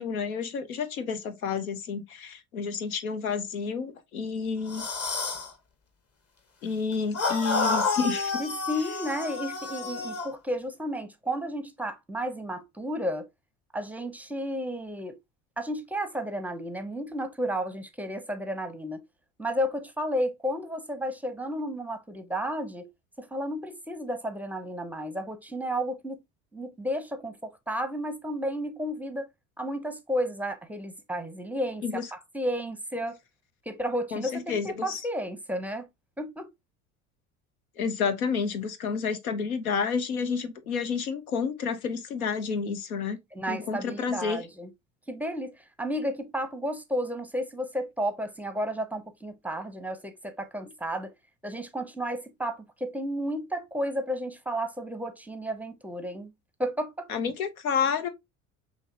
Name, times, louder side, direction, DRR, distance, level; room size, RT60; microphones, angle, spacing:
voice 1, 0.0-4.9 6.6-8.4 31.8-32.1 34.1-35.0 37.8-43.2 43.5-44.5 57.1-58.1, left 5 dB, 80° left, 0.7 m, -30 dB
sound 1, 4.7-5.5 7.1-10.3, left 4 dB, 35° left, 1.2 m, -30 dB
voice 2, 8.4-13.3 13.7-15.2 15.6-19.0 19.4-22.9 23.2-26.2 26.5-29.3 29.6-33.2 33.7-35.9 36.2-36.5 43.3-44.7 45.1-51.1 51.4-56.3 56.6-57.1, equal, 5° right, 0.6 m, -32 dB
5.7 x 2.9 x 2.7 m
figure-of-eight pair, 65°, 42 cm